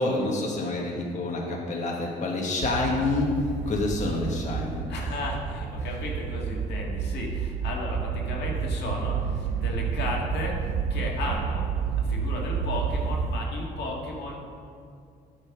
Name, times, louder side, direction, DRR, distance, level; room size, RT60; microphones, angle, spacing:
voice 1, 0.0-3.3 3.6-4.8, left 2 dB, 45° left, -2 dB, 1.5 m, -27 dB
sound 1, 2.6-13.4, right 6 dB, 75° right, 0.6 m, -30 dB
voice 2, 4.9-10.6 10.9-11.7 12.0-14.4, left 2 dB, 75° left, -2 dB, 1.8 m, -34 dB
9.1 x 5.7 x 5.9 m, 2.3 s
supercardioid pair, 75°, 18 cm